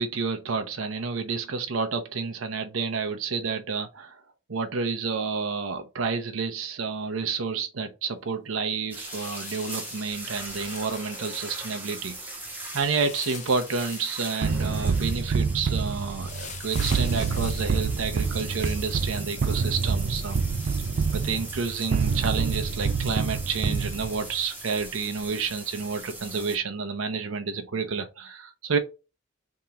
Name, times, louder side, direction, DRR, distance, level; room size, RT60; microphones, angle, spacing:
voice 1, 0.0-4.2 4.5-12.2 12.7-20.4 21.1-28.8, right 5 dB, 90° right, 0.7 m, -30 dB
sound 1, 8.9-26.6, right 2 dB, 10° right, 0.9 m, -40 dB
sound 2, 9.0-11.6 12.7-14.7 16.2-19.0 19.9-21.6 22.0-22.1 22.5-22.6 23.5-25.2 26.0-26.1, left 6 dB, 35° left, 0.7 m, -45 dB
sound 3, 14.4-24.4, right 5 dB, 50° right, 0.3 m, -27 dB
3.6 x 2.9 x 4.0 m
head